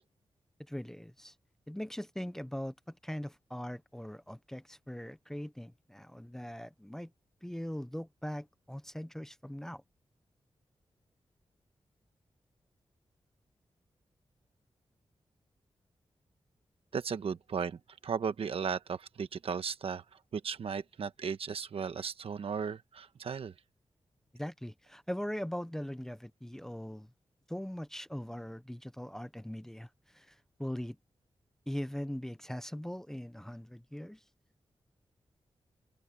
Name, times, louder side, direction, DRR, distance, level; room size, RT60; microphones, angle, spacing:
voice 1, 0.7-1.3 1.7-7.1 7.4-9.8 24.3-27.1 27.5-31.0 31.7-34.2, equal, 5° left, 0.7 m, -40 dB
voice 2, 16.9-20.0 20.3-23.5, right 6 dB, 65° right, 1.2 m, -36 dB
open air
wide cardioid pair, 175°, 10 cm